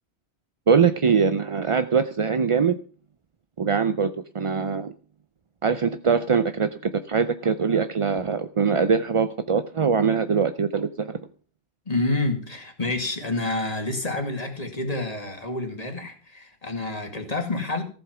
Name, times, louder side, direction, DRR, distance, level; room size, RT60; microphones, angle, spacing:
voice 1, 0.7-2.8 3.6-4.9 5.6-6.7 7.1-11.1, right 6 dB, 40° right, 0.5 m, -22 dB
voice 2, 11.9-17.8, left 2 dB, 35° left, 2.5 m, -28 dB
14.5 x 8.0 x 6.1 m
omnidirectional pair, 1.2 m